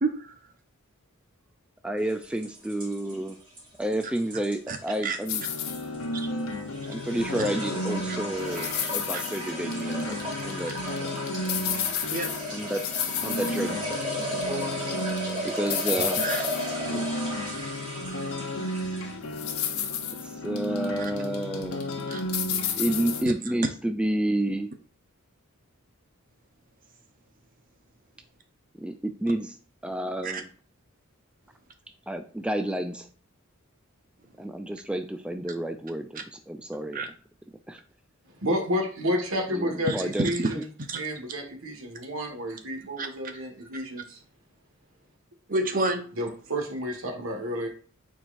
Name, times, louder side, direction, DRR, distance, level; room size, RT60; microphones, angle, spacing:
voice 1, 0.0-0.3 4.7-4.8 5.0-5.2 6.1-6.3 7.4-7.5 8.1-8.2 8.5-8.9 9.1-9.2 12.1-12.6 16.0-16.4 22.1-22.2 23.2-23.3 30.2-30.4 36.9-37.1 39.8-40.5 40.8-41.0 43.0-43.1 45.5-46.1, right 2 dB, 40° right, 6 dB, 0.8 m, -30 dB
voice 2, 1.8-3.4 3.8-5.4 6.9-11.0 12.5-12.9 13.2-13.9 14.2-14.7 15.1-16.3 16.9-17.1 20.2-21.8 22.8-24.7 28.8-29.6 29.8-30.5 32.1-33.1 34.4-37.0 37.7-37.8 39.5-40.6, right 1 dB, 5° right, 7 dB, 0.3 m, -30 dB
sound 1, 2.1-19.3, equal, 25° right, 2.5 m, -35 dB
sound 2, 5.3-23.2, left 3 dB, 85° left, 1.0 m, -32 dB
voice 3, 38.4-40.6 41.0-44.2 46.1-47.7, equal, 70° right, 1 dB, 1.6 m, -30 dB
8.9 x 4.6 x 2.5 m, 0.41 s
head